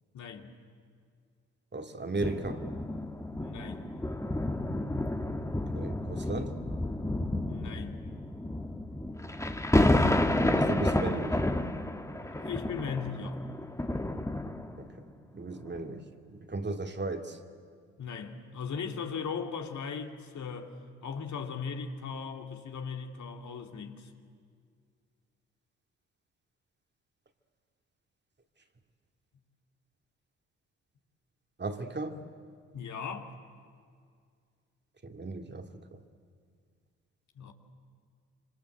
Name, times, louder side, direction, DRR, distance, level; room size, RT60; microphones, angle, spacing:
voice 1, 0.1-0.5 3.3-3.8 7.5-8.1 12.2-13.4 18.0-20.7 21.0-24.1 32.7-33.3 37.4-37.5, left 6 dB, 60° left, 2.7 m, -38 dB
voice 2, 1.7-2.6 5.7-6.5 10.5-11.4 14.8-14.9 15.3-16.0 16.3-17.4 31.6-32.2 35.0-35.8, right 3 dB, 30° right, 2.5 m, -35 dB
sound 1, 2.2-15.0 15.7-15.8, left 1 dB, 10° left, 1.8 m, -30 dB
26.5 x 25.0 x 8.0 m
hypercardioid pair, 50°, 33 cm